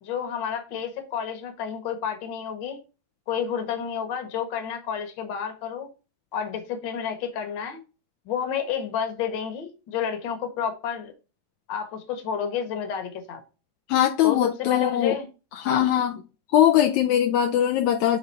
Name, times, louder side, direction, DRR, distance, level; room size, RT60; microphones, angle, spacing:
voice 1, 0.0-2.8 3.3-5.9 6.3-7.8 8.2-11.1 11.7-13.4 14.2-15.3 15.6-15.8, left 7 dB, 50° left, 1.5 m, -30 dB
voice 2, 13.9-15.2 15.5-16.1 16.5-18.2, left 11 dB, 80° left, 1.8 m, -21 dB
8.0 x 3.7 x 5.5 m
omnidirectional pair, 3.6 m